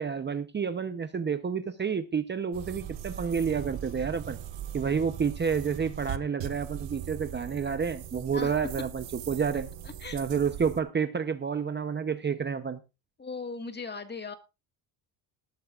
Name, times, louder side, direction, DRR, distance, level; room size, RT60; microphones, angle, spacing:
voice 1, 0.0-4.4 4.7-9.7 10.1-12.8, right 6 dB, 25° right, 0.8 m, -29 dB
sound 1, 2.5-10.8, right 10 dB, 70° right, 1.4 m, -40 dB
voice 2, 9.8-10.2 13.2-14.3, left 4 dB, 20° left, 1.9 m, -38 dB
18.5 x 12.5 x 2.5 m
cardioid pair, 125°, 45 cm